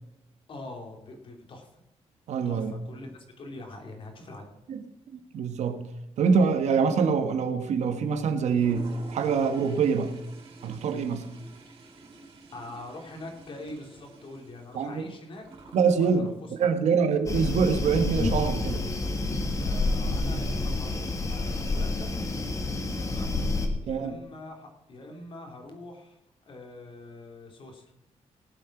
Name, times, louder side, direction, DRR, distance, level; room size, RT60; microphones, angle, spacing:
voice 1, 0.5-1.7 2.4-4.4 12.5-15.5 15.8-16.2 16.6-16.7 19.6-22.1 23.0-23.4 23.8-26.2 26.5-27.8, left 2 dB, 50° left, 3 dB, 3.1 m, -43 dB
voice 2, 2.3-2.7 4.7-5.8 6.2-10.1 10.6-11.3 14.7-15.1 15.7-18.8 23.9-24.2, right 5 dB, 75° right, 9 dB, 1.5 m, -25 dB
Toilet flush, 8.5-16.3, right 2 dB, 50° right, 4.3 m, -48 dB
sound 1, 17.3-23.7, left 2 dB, 25° left, 1.7 m, -28 dB
18.0 x 7.8 x 6.0 m, 0.91 s
wide cardioid pair, 170°, 12 cm